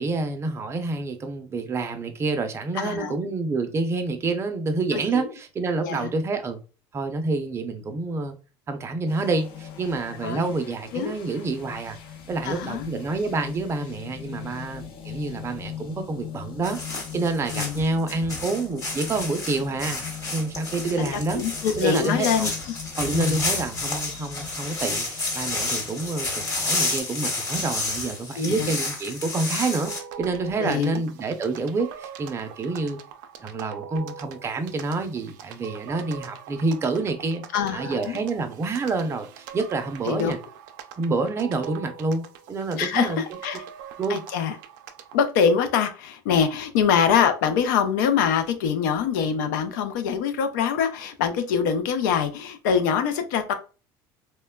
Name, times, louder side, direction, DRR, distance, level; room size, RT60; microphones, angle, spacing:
voice 1, 0.0-6.6 6.9-8.3 8.7-12.0 12.3-21.4 21.8-22.5 23.0-29.9 30.2-33.0 33.4-37.4 37.7-40.4 41.0-43.2 44.0-44.2, right 3 dB, 25° right, 0.5 m, -28 dB
voice 2, 2.7-3.2 4.9-5.3 5.8-6.1 10.2-10.5 10.9-11.1 12.4-12.9 17.5-17.8 21.0-22.5 23.1-23.4 28.4-28.7 30.6-31.0 37.5-38.2 40.1-40.3 42.7-43.6 44.1-44.6 45.1-53.5, left 7 dB, 90° left, 0.5 m, -24 dB
sound 1, 9.1-27.0, left 8 dB, 60° left, 0.8 m, -41 dB
sound 2, 16.6-30.0, left 2 dB, 30° left, 1.1 m, -30 dB
sound 3, 29.9-45.2, right 8 dB, 85° right, 0.4 m, -42 dB
3.0 x 2.1 x 2.2 m
supercardioid pair, 115°, 10 cm